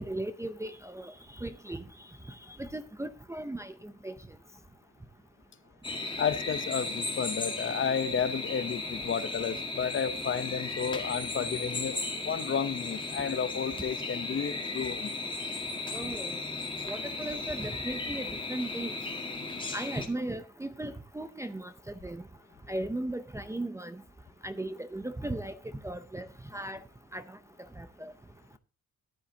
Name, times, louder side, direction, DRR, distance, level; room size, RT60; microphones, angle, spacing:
voice 1, 0.0-1.8 2.6-4.2 15.9-16.4 16.9-19.0 19.7-22.2 22.7-24.0 24.4-25.5 25.8-26.8 27.1-27.4 27.8-28.1, right 1 dB, 10° right, 0.5 m, -37 dB
sound 1, 5.8-20.1, left 3 dB, 15° left, 1.7 m, -36 dB
voice 2, 6.2-12.0 12.2-15.1, left 7 dB, 40° left, 0.8 m, -32 dB
14.0 x 10.0 x 2.8 m
wide cardioid pair, 170°, 31 cm